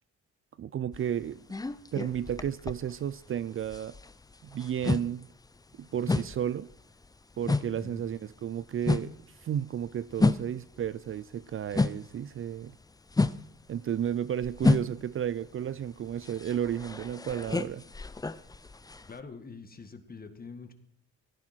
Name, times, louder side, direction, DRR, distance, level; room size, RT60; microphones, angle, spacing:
voice 1, 0.6-1.4 1.9-4.0 4.4-5.3 5.8-6.7 7.4-9.1 9.4-12.7 13.7-17.8, right 9 dB, 45° right, 0.5 m, -33 dB
sound 1, 0.9-3.3 3.6-12.2 12.5-19.2, left 3 dB, 10° left, 0.6 m, -31 dB
voice 2, 19.1-20.7, left 4 dB, 30° left, 2.0 m, -45 dB
17.0 x 14.5 x 4.5 m
cardioid pair, 90°, 30 cm